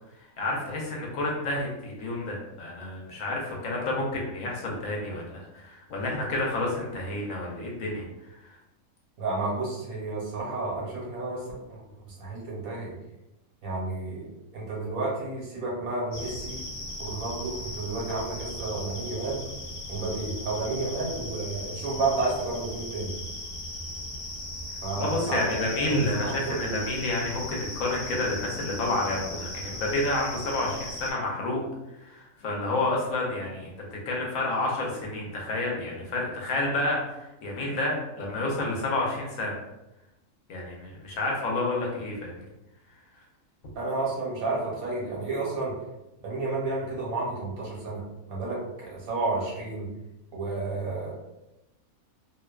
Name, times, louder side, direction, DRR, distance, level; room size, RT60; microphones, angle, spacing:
voice 1, 0.4-8.0 8.4-8.6 25.0-31.6 32.0-33.7 34.1-39.5 40.5-42.3, left 2 dB, 70° left, -2 dB, 1.0 m, -29 dB
voice 2, 9.2-11.8 12.2-13.0 13.6-16.6 17.0-19.5 19.9-23.1 24.8-26.7 43.7-45.8 46.2-48.0 48.3-49.9 50.3-51.1, right 3 dB, 75° right, -4 dB, 1.2 m, -31 dB
sound 1, 16.1-31.1, left 1 dB, 55° left, 0.8 m, -38 dB
2.8 x 2.1 x 2.3 m, 0.95 s
omnidirectional pair, 1.5 m